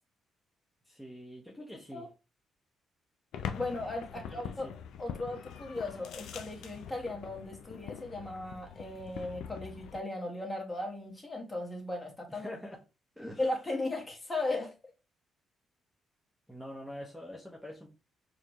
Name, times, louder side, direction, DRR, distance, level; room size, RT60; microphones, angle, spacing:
voice 1, 0.9-2.1 4.3-4.7 12.3-12.8 13.2-13.5 16.5-17.9, equal, 5° right, 0.9 m, -45 dB
sound 1, 3.3-10.0, left 8 dB, 80° left, 0.4 m, -43 dB
voice 2, 3.6-4.7 5.0-12.5 13.4-14.7, left 2 dB, 20° left, 1.3 m, -37 dB
4.8 x 2.2 x 2.9 m
cardioid pair, 90°, 0 cm